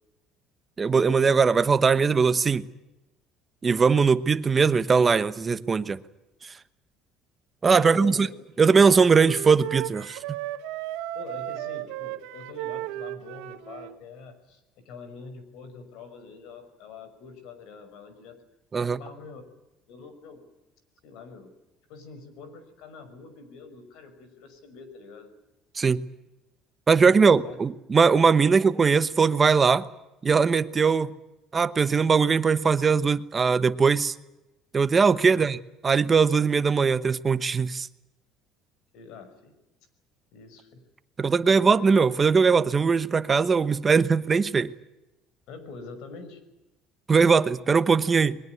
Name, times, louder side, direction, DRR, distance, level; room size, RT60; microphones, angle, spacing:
voice 1, 0.8-2.7 3.6-6.0 7.6-8.3 8.6-10.2 18.7-19.0 25.7-26.0 26.9-29.9 30.2-31.1 31.5-34.1 34.7-35.6 35.8-37.9 41.2-44.7 47.1-48.4, right 5 dB, 20° right, 1.0 m, -20 dB
voice 2, 7.8-8.3 11.1-18.4 18.8-19.5 19.9-20.5 21.0-21.5 21.9-25.3 27.0-27.6 28.5-28.6 35.3-35.4 38.9-39.5 40.3-40.9 45.5-46.4, left 4 dB, 70° left, 5.8 m, -44 dB
Wind instrument woodwind instrument, 8.6-14.0, right 15 dB, 85° right, 1.7 m, -35 dB
22.0 x 21.0 x 9.4 m
cardioid pair, 155°, 0 cm